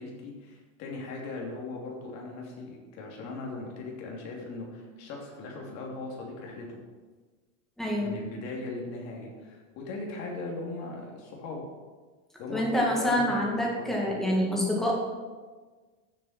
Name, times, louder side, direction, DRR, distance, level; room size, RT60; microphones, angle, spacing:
voice 1, 0.0-6.8 8.0-11.6 12.4-14.4, left 3 dB, 40° left, -1 dB, 3.0 m, -39 dB
voice 2, 7.8-8.1 12.5-15.0, equal, ahead, -3 dB, 2.1 m, -26 dB
13.5 x 7.8 x 4.4 m, 1.4 s
supercardioid pair, 160°, 39 cm